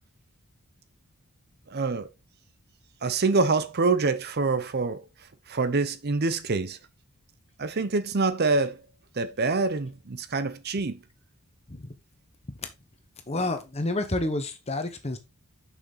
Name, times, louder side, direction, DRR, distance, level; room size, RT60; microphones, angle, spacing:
voice 1, 1.7-2.1 3.0-5.0 5.5-6.8 7.6-8.8 9.2-11.0, right 3 dB, 45° right, 0.7 m, -26 dB
voice 2, 13.3-15.2, left 2 dB, 30° left, 1.3 m, -29 dB
6.4 x 5.9 x 3.9 m
head